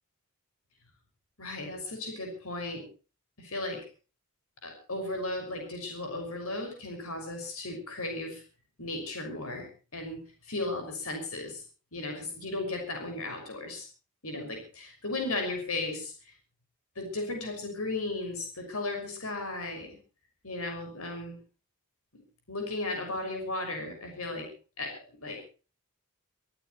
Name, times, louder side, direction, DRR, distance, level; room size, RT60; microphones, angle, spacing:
voice 1, 1.4-2.8 3.4-3.8 4.6-8.4 8.8-11.6 11.9-13.9 14.2-16.3 17.0-20.0 20.4-21.4 22.1-22.2 22.5-24.5 24.8-25.5, left 2 dB, 75° left, 4 dB, 6.1 m, -35 dB
25.5 x 15.0 x 3.2 m, 0.37 s
head